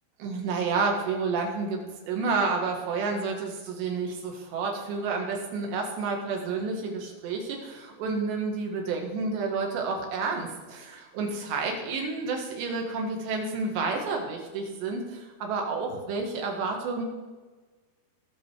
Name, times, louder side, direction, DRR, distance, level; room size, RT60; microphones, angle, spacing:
voice 1, 0.2-17.1, right 4 dB, 85° right, 1 dB, 4.1 m, -30 dB
19.0 x 6.6 x 5.0 m, 1.3 s
omnidirectional pair, 4.8 m